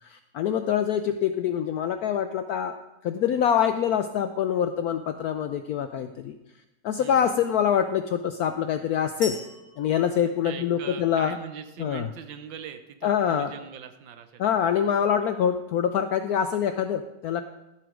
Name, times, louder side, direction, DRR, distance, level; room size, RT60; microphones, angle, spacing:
voice 1, 0.0-2.8 3.0-6.3 6.8-9.4 9.8-11.4 11.8-12.1 13.0-13.5 14.4-17.4, left 8 dB, 75° left, 8 dB, 0.8 m, -25 dB
voice 2, 7.0-7.5 10.4-14.9, right 8 dB, 80° right, 9 dB, 1.6 m, -41 dB
sound 1, 9.2-11.2, left 1 dB, 25° right, 1.6 m, -41 dB
12.0 x 7.8 x 5.0 m, 0.98 s
omnidirectional pair, 2.0 m